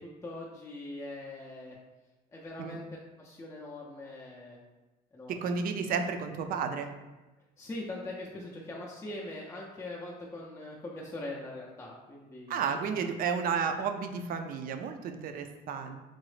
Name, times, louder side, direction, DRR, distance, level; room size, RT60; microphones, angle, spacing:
voice 1, 0.0-1.8 2.3-2.8 3.2-4.6 5.1-5.5 7.6-12.8, left 2 dB, 15° left, -3 dB, 0.4 m, -42 dB
voice 2, 5.3-6.9 12.5-16.0, right 6 dB, 60° right, 7 dB, 0.4 m, -32 dB
3.7 x 2.0 x 3.1 m, 1.1 s
cardioid pair, 110°, 17 cm